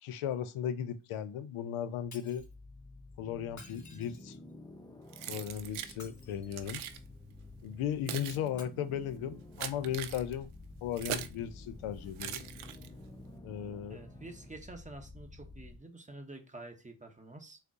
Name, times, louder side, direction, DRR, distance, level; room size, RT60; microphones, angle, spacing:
voice 1, 0.0-2.5 3.2-4.4 5.3-6.8 7.6-10.5 10.8-12.4 13.4-14.0, left 9 dB, 80° left, 0.5 m, -36 dB
Shatter, 2.1-2.5 3.5-4.5 5.8-6.8 8.5-8.6, left 3 dB, 35° left, 1.2 m, -54 dB
sound 1, 2.1-15.8, left 2 dB, 10° left, 0.4 m, -51 dB
Keys jangling, 5.1-6.0 6.5-7.0 7.7-11.4 12.2-13.1, right 11 dB, 75° right, 0.6 m, -41 dB
voice 2, 13.9-17.6, right 2 dB, 15° right, 0.8 m, -48 dB
3.7 x 2.0 x 3.5 m
cardioid pair, 65°, 49 cm